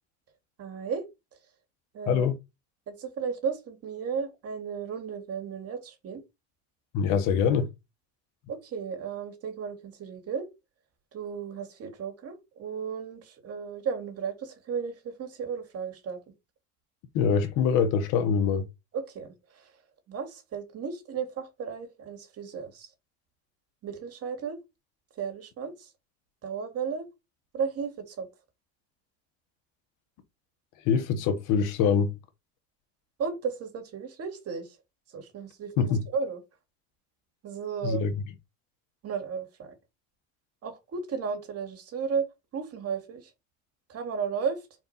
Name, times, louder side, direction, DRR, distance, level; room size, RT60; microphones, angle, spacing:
voice 1, 0.6-1.1 1.9-2.3 2.9-6.2 8.5-10.5 11.1-16.2 18.9-19.6 20.1-22.9 23.8-24.6 25.2-25.9 26.4-27.1 27.5-28.3 33.2-34.7 35.1-35.9 36.1-36.4 37.4-38.0 39.0-39.7 40.6-43.3 43.9-44.6, right 6 dB, 50° right, 2.4 m, -34 dB
voice 2, 2.1-2.4 6.9-7.7 17.1-18.6 30.8-32.1 35.8-36.0 37.8-38.1, left 6 dB, 70° left, 1.4 m, -24 dB
5.2 x 4.6 x 4.3 m
supercardioid pair, 95°, 32 cm